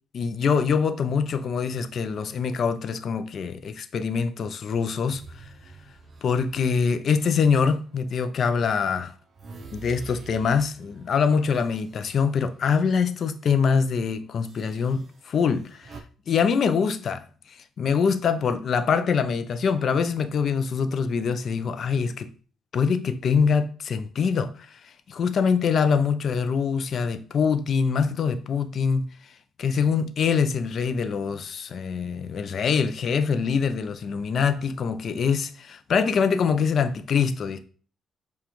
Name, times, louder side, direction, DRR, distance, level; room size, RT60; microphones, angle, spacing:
voice 1, 0.1-5.2 6.2-9.1 9.7-16.0 16.3-22.3 22.7-29.1 29.6-37.6, left 6 dB, 55° left, 0.5 m, -24 dB
sound 1, 4.9-8.3 8.7-13.1 13.4-13.6 14.4-16.0, right 3 dB, 50° right, 0.6 m, -47 dB
7.0 x 2.3 x 3.0 m
cardioid pair, 90°, 0 cm